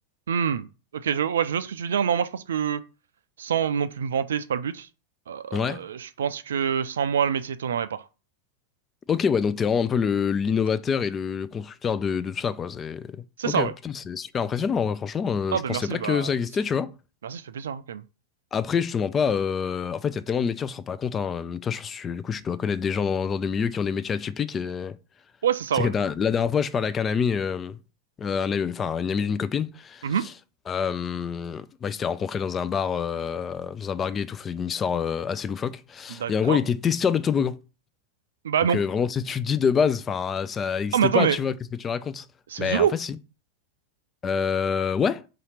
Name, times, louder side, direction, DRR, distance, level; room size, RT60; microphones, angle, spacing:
voice 1, 0.3-0.7 0.9-2.8 3.4-4.9 5.3-8.0 13.4-13.7 15.5-16.3 17.2-18.0 25.4-25.9 30.0-30.3 36.1-36.6 38.4-38.8 40.9-41.4 42.5-42.9, right 8 dB, 65° right, 0.3 m, -26 dB
voice 2, 9.1-13.2 13.4-16.9 18.5-25.0 25.7-27.8 28.2-30.1 30.7-37.6 38.7-41.6 41.8-42.3 42.6-43.1 44.2-45.2, left 6 dB, 20° left, 0.3 m, -26 dB
3.9 x 2.8 x 4.9 m
figure-of-eight pair, 90°, 0 cm